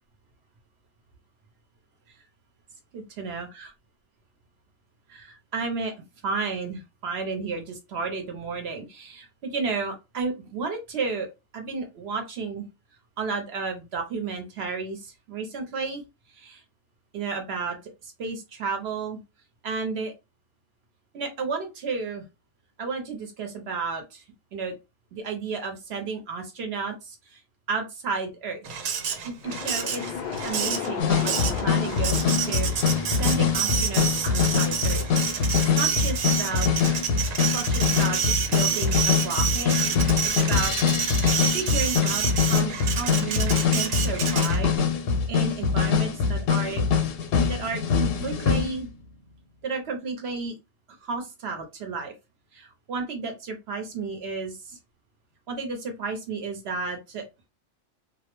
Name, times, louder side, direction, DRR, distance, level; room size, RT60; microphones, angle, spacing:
voice 1, 2.9-3.7 5.1-11.3 11.5-12.6 13.2-16.0 16.3-16.6 17.1-17.8 18.0-19.2 19.6-20.1 21.1-22.3 22.8-24.2 24.5-24.7 25.1-27.4 27.7-28.7 29.0-35.1 35.4-36.9 37.4-39.7 40.2-41.2 41.5-44.8 45.3-46.8 47.5-48.9 49.6-50.6 50.9-52.1 52.5-54.8 55.5-57.2, right 4 dB, 60° right, 4 dB, 0.8 m, -32 dB
Printer, 28.6-44.8, right 7 dB, 85° right, 1.0 m, -29 dB
sound 1, 29.4-40.3 40.6-41.1, left 6 dB, 65° left, 0.4 m, -37 dB
sound 2, 31.0-48.9, left 6 dB, 80° left, 0.9 m, -24 dB
2.3 x 2.0 x 2.9 m, 0.25 s
omnidirectional pair, 1.3 m